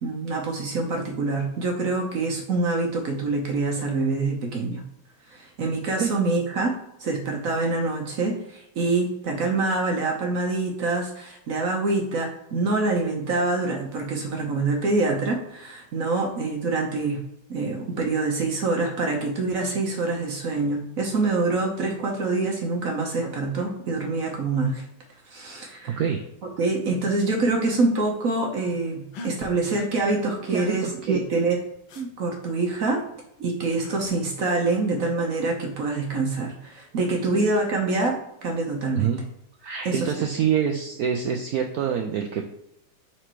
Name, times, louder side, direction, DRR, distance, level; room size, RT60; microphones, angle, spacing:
voice 1, 0.0-4.8 5.3-6.7 7.0-17.2 17.5-24.9 25.3-26.0 26.6-31.6 32.0-33.0 33.4-39.1 39.8-40.1, right 3 dB, 55° right, 2 dB, 1.0 m, -25 dB
voice 2, 26.0-26.3 30.5-31.2 37.3-37.5 39.0-39.2 39.6-42.5, right 8 dB, 80° right, 4 dB, 0.8 m, -26 dB
sound 1, 29.1-29.3 31.9-32.1 33.8-34.0 35.8-36.2, left 3 dB, 80° left, 1.6 m, -40 dB
5.0 x 4.4 x 4.6 m, 0.82 s
omnidirectional pair, 2.2 m